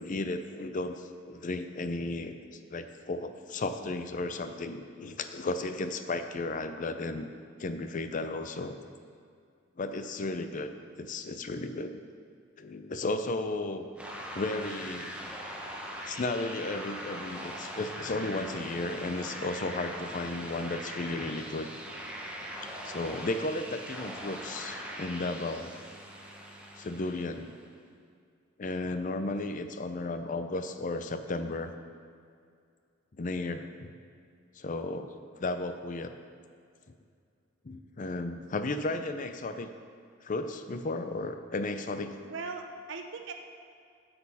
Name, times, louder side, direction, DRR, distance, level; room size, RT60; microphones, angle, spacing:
voice 1, 0.0-7.3 7.6-8.8 9.8-12.0 12.6-13.9 14.3-15.1 16.1-21.7 22.8-25.8 26.8-27.5 28.6-31.7 33.2-33.9 34.6-35.1 35.4-36.1 37.6-39.7 40.2-42.1, left 2 dB, 40° left, 8 dB, 0.5 m, -34 dB
sound 1, 14.0-27.7, equal, 5° right, 0.9 m, -41 dB
voice 2, 42.2-43.3, right 4 dB, 65° right, 4 dB, 0.6 m, -39 dB
8.4 x 6.8 x 5.5 m, 2.3 s
head